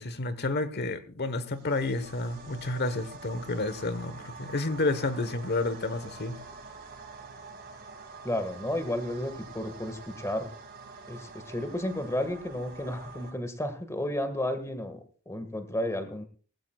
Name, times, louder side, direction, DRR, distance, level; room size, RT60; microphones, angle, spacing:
voice 1, 0.0-6.4, left 2 dB, 50° left, 13 dB, 1.2 m, -30 dB
sound 1, 1.5-13.3, right 3 dB, 45° right, 3.4 m, -46 dB
voice 2, 8.2-10.5 11.1-16.2, left 1 dB, 15° left, 8 dB, 1.7 m, -32 dB
18.5 x 15.5 x 2.4 m, 0.40 s
head